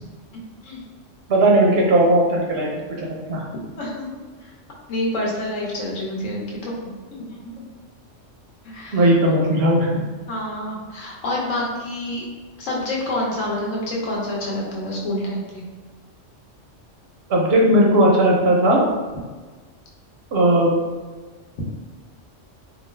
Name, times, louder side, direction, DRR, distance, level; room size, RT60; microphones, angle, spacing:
voice 1, 1.3-2.7 3.0-3.4 8.9-10.0 17.3-18.8 20.3-20.8, right 1 dB, 65° right, -1 dB, 0.7 m, -17 dB
voice 2, 3.8-4.5 4.9-7.6 8.6-9.1 10.3-12.2 12.6-15.6, left 1 dB, 80° left, -3 dB, 1.1 m, -28 dB
2.5 x 2.4 x 3.1 m, 1.4 s
omnidirectional pair, 1.3 m